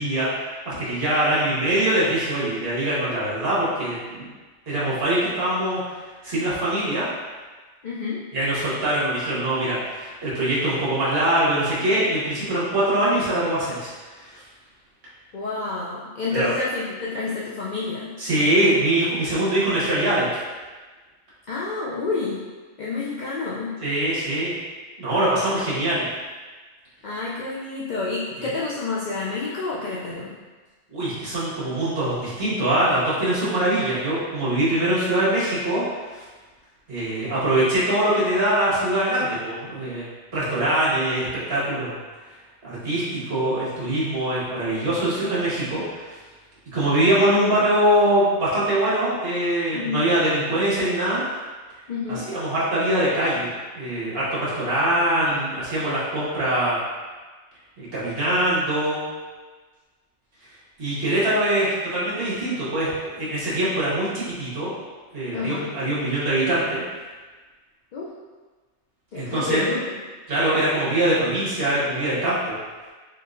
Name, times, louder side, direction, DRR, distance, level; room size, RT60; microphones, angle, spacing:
voice 1, 0.0-4.3 4.7-5.8 6.2-7.1 8.3-13.9 14.2-14.4 16.3-16.5 18.2-20.4 23.8-24.5 25.0-26.1 30.9-35.8 36.1-36.2 36.9-40.1 40.3-41.9 42.6-46.2 46.7-51.2 52.1-53.5 53.7-56.8 57.8-59.0 60.8-64.7 65.1-66.8 69.1-69.7 70.3-72.5, right 1 dB, 50° right, -9 dB, 1.5 m, -23 dB
voice 2, 1.1-1.4 7.8-8.2 15.3-18.2 21.5-22.4 22.8-23.8 27.0-30.3 49.7-50.0 51.9-52.3 65.3-65.7 67.9-68.1 69.1-70.0, left 3 dB, 65° left, -5 dB, 0.4 m, -29 dB
4.2 x 3.7 x 2.5 m, 1.3 s
omnidirectional pair, 1.3 m